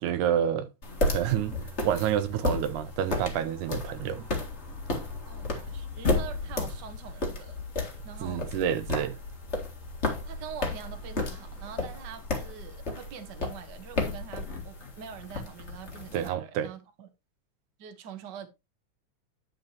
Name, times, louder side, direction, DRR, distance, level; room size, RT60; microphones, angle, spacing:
voice 1, 0.0-0.7 1.1-1.6 1.8-4.2 8.2-9.2 16.1-16.7, right 9 dB, 80° right, 2.1 m, -28 dB
sound 1, 0.8-16.3, left 2 dB, 30° left, 1.3 m, -33 dB
voice 2, 5.2-7.6 8.0-8.5 10.2-17.1 17.8-18.5, right 8 dB, 55° right, 1.2 m, -44 dB
9.6 x 7.1 x 2.9 m
omnidirectional pair, 3.6 m